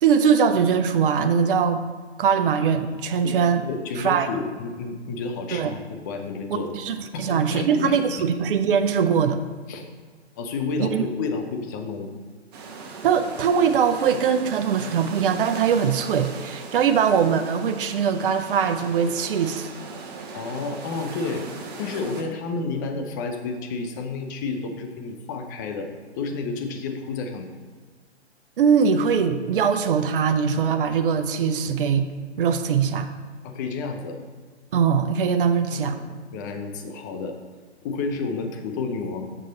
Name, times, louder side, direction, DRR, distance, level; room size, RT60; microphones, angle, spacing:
voice 1, 0.0-3.6 4.0-4.3 5.5-5.7 6.7-9.4 10.8-11.0 13.0-19.7 28.6-32.1 32.4-33.1 34.7-36.1, right 7 dB, 55° right, 8 dB, 0.6 m, -21 dB
voice 2, 3.2-6.7 7.1-8.3 9.7-9.9 10.4-12.1 20.3-21.4 21.8-25.9 26.2-27.5 33.4-34.2 35.7-37.4 37.8-39.3, left 4 dB, 20° left, 5 dB, 0.5 m, -31 dB
sound 1, 12.5-22.2, right 4 dB, 35° right, 1.2 m, -39 dB
7.6 x 6.2 x 4.0 m, 1.5 s
hypercardioid pair, 135°, 34 cm